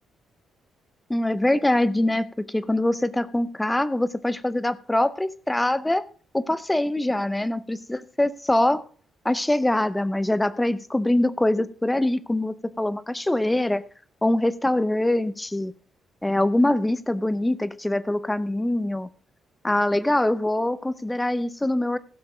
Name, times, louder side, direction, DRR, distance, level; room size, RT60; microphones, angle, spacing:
voice 1, 1.1-6.0 6.3-8.8 9.2-13.8 14.2-15.7 16.2-19.1 19.6-22.0, left 1 dB, 5° left, 16 dB, 0.5 m, -23 dB
16.0 x 6.8 x 4.9 m, 0.42 s
cardioid pair, 170°, 0 cm